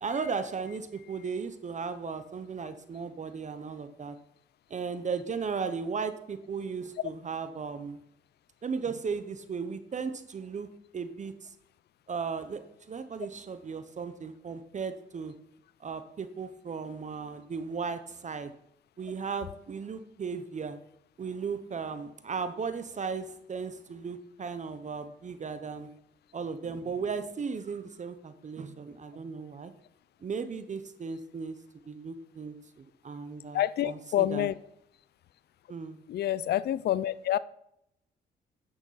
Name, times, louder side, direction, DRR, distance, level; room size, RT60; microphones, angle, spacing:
voice 1, 0.0-4.2 4.7-8.0 8.6-10.7 10.9-11.5 12.1-12.6 12.9-15.3 15.8-18.5 19.0-20.8 21.2-25.9 26.3-29.7 30.2-31.6 31.9-34.5 35.7-36.0, right 5 dB, 35° right, 10 dB, 0.8 m, -36 dB
voice 2, 33.5-34.5 36.1-37.4, left 12 dB, 55° left, 18 dB, 0.4 m, -27 dB
9.2 x 6.5 x 5.6 m, 0.78 s
cardioid pair, 90°, 20 cm